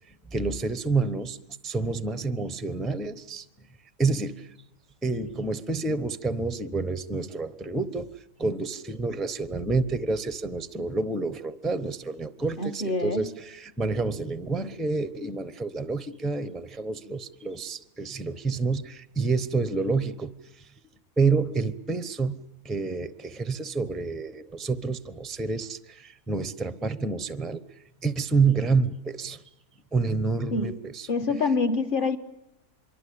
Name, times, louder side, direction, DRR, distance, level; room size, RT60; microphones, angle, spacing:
voice 1, 0.3-1.4 1.6-3.4 4.0-4.5 5.0-8.1 8.4-20.3 20.6-20.7 21.2-22.4 22.6-27.6 28.0-29.4 29.9-31.1, right 4 dB, ahead, 0.6 m, -28 dB
voice 2, 12.6-13.3 30.5-32.2, left 3 dB, 35° left, 1.5 m, -26 dB
25.5 x 23.0 x 8.6 m
omnidirectional pair, 1.7 m